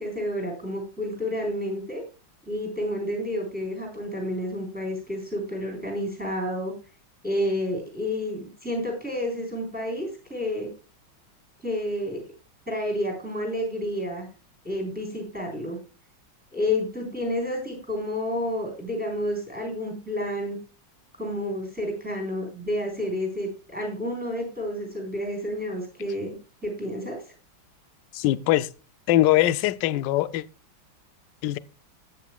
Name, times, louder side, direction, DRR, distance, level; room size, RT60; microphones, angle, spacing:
voice 1, 0.0-2.0 2.5-6.7 7.2-10.7 11.6-12.2 12.7-14.3 14.6-15.8 16.5-20.6 21.2-26.4 26.6-27.2, left 1 dB, 5° right, 3.7 m, -30 dB
voice 2, 28.1-28.7 29.1-30.4 31.4-31.6, left 15 dB, 70° left, 1.2 m, -22 dB
13.5 x 9.1 x 2.3 m
omnidirectional pair, 2.2 m